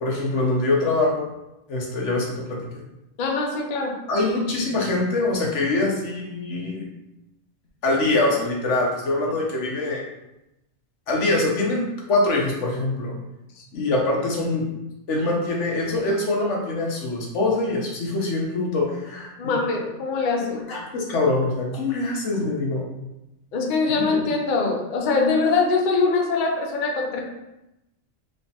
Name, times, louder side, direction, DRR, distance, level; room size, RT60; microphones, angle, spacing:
voice 1, 0.0-1.3 1.7-2.6 4.1-6.9 7.8-10.0 11.1-13.2 13.7-14.7 15.1-19.6 20.4-22.9 24.0-24.2, left 2 dB, 85° left, -1 dB, 1.1 m, -24 dB
voice 2, 3.2-4.0 13.6-13.7 19.4-20.6 23.5-27.2, left 4 dB, 55° left, 1 dB, 0.6 m, -23 dB
3.2 x 3.1 x 2.8 m, 0.92 s
omnidirectional pair, 1.2 m